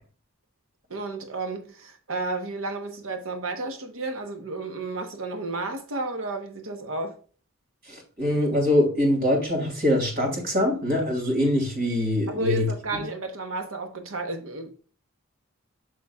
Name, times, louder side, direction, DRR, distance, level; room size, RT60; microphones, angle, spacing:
voice 1, 0.9-7.2 12.3-14.7, right 3 dB, 90° right, 1.1 m, -32 dB
voice 2, 7.9-12.7, left 1 dB, 50° right, 2.7 m, -23 dB
6.9 x 6.3 x 2.3 m
head